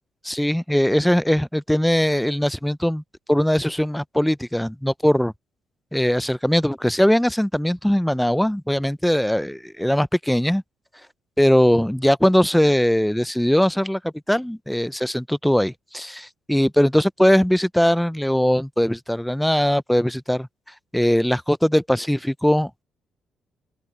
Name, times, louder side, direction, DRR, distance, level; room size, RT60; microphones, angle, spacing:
voice 1, 0.2-3.0 3.3-5.3 5.9-10.6 11.4-20.5 20.9-22.7, equal, 5° left, 0.4 m, -20 dB
open air
cardioid pair, 90°, 0 cm